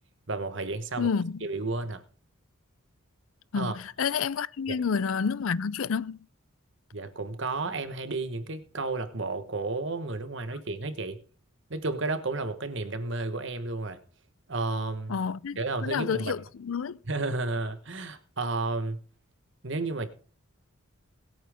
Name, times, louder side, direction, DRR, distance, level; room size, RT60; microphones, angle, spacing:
voice 1, 0.3-1.1 1.4-2.0 3.5-3.7 4.7-4.8 6.9-11.2 11.7-14.0 14.5-15.2 15.6-16.3 17.1-19.0 19.6-20.1, right 3 dB, 60° right, 1.3 m, -32 dB
voice 2, 1.0-1.5 3.5-6.2 15.1-17.0, left 6 dB, 75° left, 0.5 m, -29 dB
20.5 x 8.7 x 3.6 m
head